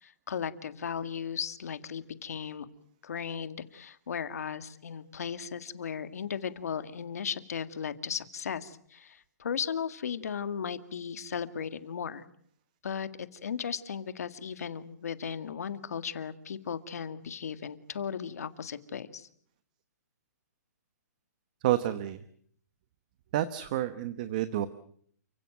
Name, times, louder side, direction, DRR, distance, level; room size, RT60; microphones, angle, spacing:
voice 1, 0.0-2.7 3.0-12.2 12.8-19.3, left 7 dB, 60° left, 11 dB, 2.0 m, -36 dB
voice 2, 21.6-22.2 23.3-24.7, right 13 dB, 25° right, 13 dB, 1.0 m, -29 dB
29.5 x 17.0 x 9.3 m, 0.63 s
hypercardioid pair, 175°, 9 cm